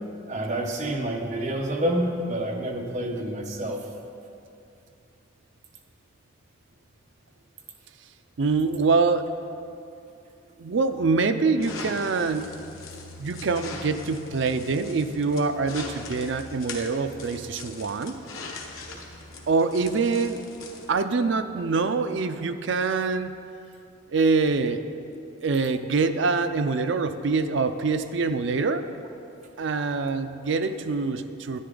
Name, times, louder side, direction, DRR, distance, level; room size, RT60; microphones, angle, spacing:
voice 1, 0.3-3.8, right 1 dB, 35° right, 0 dB, 1.0 m, -28 dB
voice 2, 8.4-9.3 10.6-12.5 13.2-18.1 19.5-20.4 20.9-23.3 24.1-24.8 25.4-28.9 29.6-31.6, right 4 dB, 60° right, 9 dB, 0.5 m, -25 dB
sound 1, 11.6-20.9, left 3 dB, 85° left, 1.1 m, -41 dB
10.0 x 9.5 x 3.8 m, 2.6 s
head